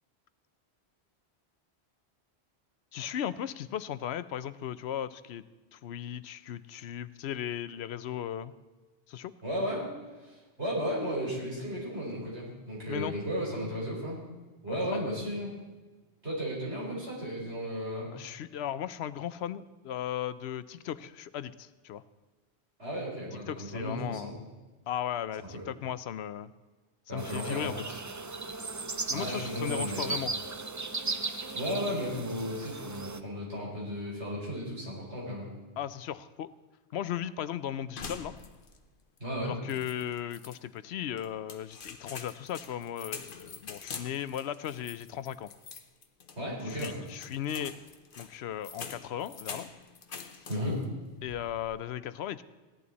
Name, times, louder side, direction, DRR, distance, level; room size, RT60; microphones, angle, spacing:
voice 1, 2.9-5.4 5.7-8.5 9.1-9.3 12.9-13.2 14.7-15.1 18.1-22.0 23.5-24.3 24.9-26.5 27.1-28.0 29.1-30.3 35.8-36.5 36.9-38.4 39.4-45.5 46.7-47.7 48.2-49.7 51.2-52.4, left 10 dB, 75° left, 15 dB, 0.8 m, -36 dB
voice 2, 9.4-9.9 10.2-14.2 14.6-15.5 16.2-18.1 22.8-24.3 25.5-25.6 27.1-27.7 29.1-30.1 31.5-35.5 39.2-39.6 46.3-47.0 50.5-50.8, equal, 90° right, -5 dB, 5.1 m, -34 dB
sound 1, 27.2-33.2, right 3 dB, 30° right, 0.3 m, -37 dB
sound 2, 38.0-38.9 39.2-39.3 39.7-40.6 41.2-50.9 51.2-51.7, left 5 dB, 55° left, 1.0 m, -45 dB
16.5 x 11.0 x 4.1 m, 1.3 s
omnidirectional pair, 1.1 m